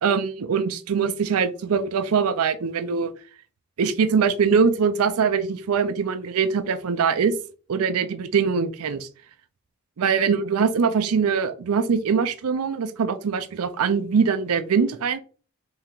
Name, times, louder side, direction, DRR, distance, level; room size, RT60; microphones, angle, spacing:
voice 1, 0.0-3.1 3.8-7.3 7.7-9.1 10.0-15.2, right 6 dB, 85° right, 10 dB, 0.5 m, -22 dB
3.6 x 2.8 x 4.4 m, 0.39 s
head